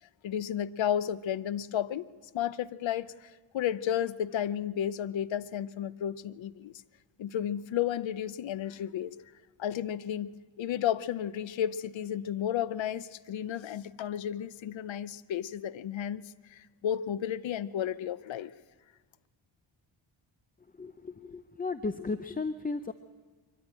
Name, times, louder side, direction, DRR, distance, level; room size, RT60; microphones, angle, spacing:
voice 1, 0.2-2.0 2.3-6.8 7.2-9.1 9.6-18.5, left 10 dB, 70° left, 17 dB, 0.7 m, -33 dB
voice 2, 20.7-22.9, left 3 dB, 20° left, 11 dB, 0.6 m, -35 dB
23.5 x 14.0 x 9.0 m, 1.4 s
wide cardioid pair, 105°, 47 cm